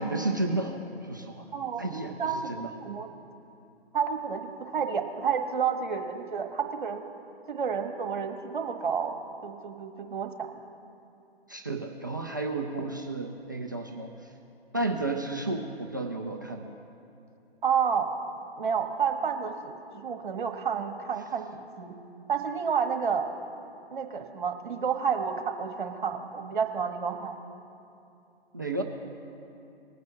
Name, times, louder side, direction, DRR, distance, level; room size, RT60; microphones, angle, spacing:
voice 1, 0.0-1.5 1.8-2.2 2.5-2.7 11.5-14.1 14.7-16.8 28.5-28.8, right 2 dB, 20° right, 2 dB, 0.4 m, -32 dB
voice 2, 1.5-3.1 3.9-7.1 7.5-9.1 9.4-10.6 17.6-18.1 18.6-21.9 22.3-23.3 23.9-27.4, right 6 dB, 50° right, 5 dB, 1.4 m, -30 dB
20.5 x 9.3 x 2.8 m, 2.7 s
figure-of-eight pair, 135°, 32 cm